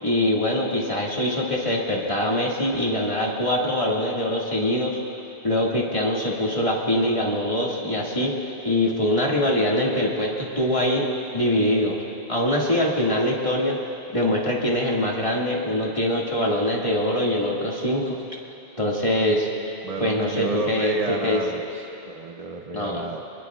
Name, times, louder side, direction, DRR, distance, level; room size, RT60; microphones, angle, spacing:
voice 1, 0.0-5.0 5.4-12.0 12.3-13.8 14.1-18.2 18.8-19.5 20.0-21.4 22.7-23.0, left 1 dB, 30° left, -4 dB, 2.3 m, -23 dB
voice 2, 19.8-23.2, right 3 dB, 40° right, 2 dB, 0.8 m, -31 dB
26.0 x 22.0 x 2.5 m, 2.8 s
omnidirectional pair, 1.1 m